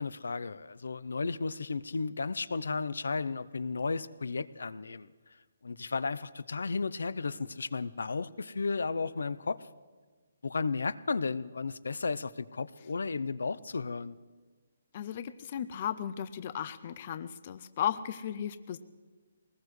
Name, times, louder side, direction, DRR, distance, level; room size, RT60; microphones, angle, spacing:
voice 1, 0.0-5.1 5.6-9.6 10.4-14.1, left 4 dB, 85° left, 17 dB, 0.6 m, -34 dB
voice 2, 14.9-18.8, left 9 dB, 25° left, 12 dB, 0.4 m, -35 dB
23.0 x 19.5 x 3.2 m, 1.4 s
hypercardioid pair, 175°, 0 cm